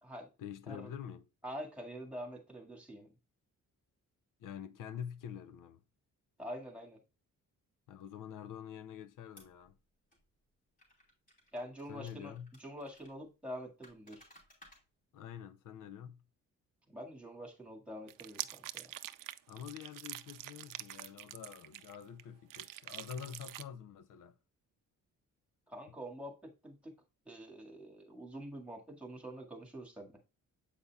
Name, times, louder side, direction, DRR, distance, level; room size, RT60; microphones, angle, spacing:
voice 1, 0.4-1.3 4.4-5.8 7.9-9.8 11.9-12.5 15.1-16.2 19.5-24.4, left 8 dB, 70° left, 0.6 m, -46 dB
voice 2, 1.4-3.1 6.4-7.0 11.5-12.3 12.6-14.3 16.9-18.9 25.7-26.9 27.3-30.2, equal, 5° right, 1.9 m, -46 dB
sound 1, 9.4-9.7 10.1-10.2 10.8-13.1 13.8-14.8, left 1 dB, 25° left, 3.5 m, -61 dB
sound 2, 18.1-22.2 22.5-23.6, right 14 dB, 80° right, 0.5 m, -45 dB
8.4 x 5.4 x 2.3 m
cardioid pair, 145°, 32 cm